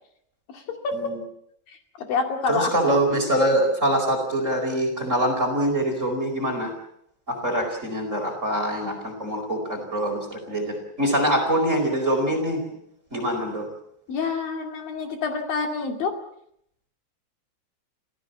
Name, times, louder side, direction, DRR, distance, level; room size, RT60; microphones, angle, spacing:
voice 1, 0.5-1.0 1.7-3.0 14.1-16.2, left 4 dB, 55° left, 4 dB, 3.9 m, -28 dB
voice 2, 2.5-6.7 7.3-12.6 13.1-13.7, right 1 dB, 15° right, 4 dB, 4.5 m, -24 dB
26.5 x 17.0 x 7.3 m, 0.72 s
omnidirectional pair, 5.4 m